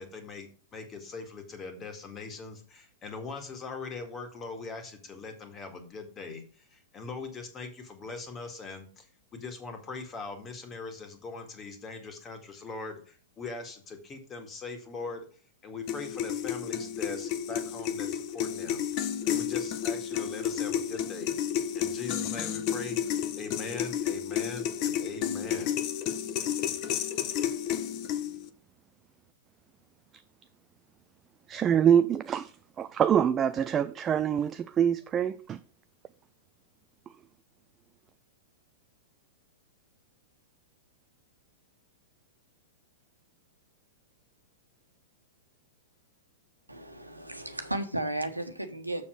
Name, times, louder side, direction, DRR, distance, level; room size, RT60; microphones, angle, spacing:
voice 1, 0.0-15.3 15.6-18.9 19.2-21.4 21.7-23.0 23.4-25.8, left 4 dB, 20° left, 2.0 m, -41 dB
sound 1, 15.9-28.5, left 9 dB, 35° left, 0.8 m, -31 dB
voice 2, 31.5-32.5 32.8-35.6, right 9 dB, 20° right, 0.4 m, -25 dB
voice 3, 46.7-49.1, right 1 dB, 85° right, 1.3 m, -34 dB
6.9 x 6.8 x 6.2 m
figure-of-eight pair, 100°, 0 cm